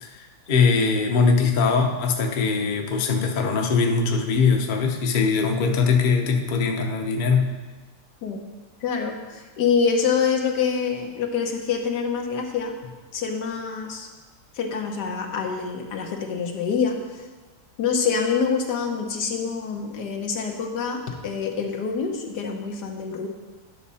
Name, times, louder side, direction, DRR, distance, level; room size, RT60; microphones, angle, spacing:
voice 1, 0.0-7.5, left 5 dB, 40° left, 3 dB, 0.7 m, -21 dB
voice 2, 8.8-12.7 13.1-14.1 14.5-17.2 17.8-23.3, left 6 dB, 85° left, 3 dB, 1.6 m, -26 dB
10.5 x 6.3 x 4.2 m, 1.3 s
omnidirectional pair, 1.7 m